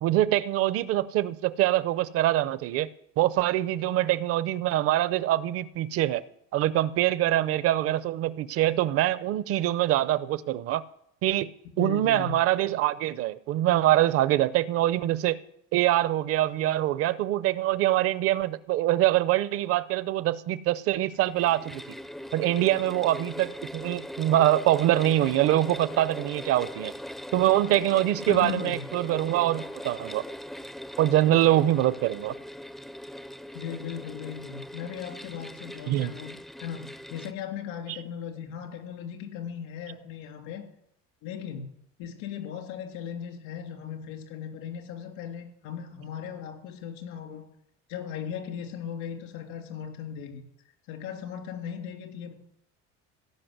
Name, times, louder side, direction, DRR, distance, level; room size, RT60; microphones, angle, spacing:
voice 1, 0.0-2.9 3.2-6.2 6.5-10.8 11.2-11.5 11.8-15.4 15.7-22.0 22.3-26.9 27.3-30.2 31.0-32.3 35.9-36.1 37.9-38.0, right 14 dB, 50° right, 0.6 m, -24 dB
voice 2, 11.8-12.3 28.3-28.8 33.5-40.6 41.2-41.7 42.0-47.4 47.9-50.4 50.9-52.4, left 8 dB, 80° left, 3.1 m, -37 dB
sound 1, 21.1-37.3, equal, ahead, 0.4 m, -40 dB
17.0 x 5.9 x 8.0 m
cardioid pair, 160°, 30 cm